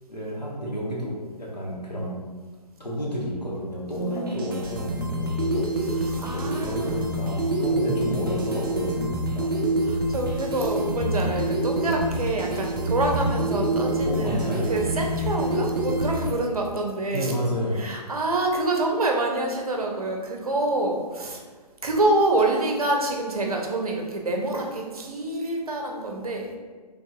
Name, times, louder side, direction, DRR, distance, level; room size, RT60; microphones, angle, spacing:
voice 1, 0.1-2.2 2.8-5.9 6.2-9.6 14.1-14.7 17.1-17.8, equal, 85° left, -4 dB, 1.5 m, -30 dB
voice 2, 3.9-4.5 5.8-7.1 9.8-17.3 17.7-21.4 21.8-26.6, right 2 dB, 60° right, 1 dB, 0.9 m, -27 dB
sound 1, 4.3-16.3, right 1 dB, 35° right, 0.5 m, -27 dB
5.2 x 3.5 x 2.5 m, 1.4 s
figure-of-eight pair, 135°, 21 cm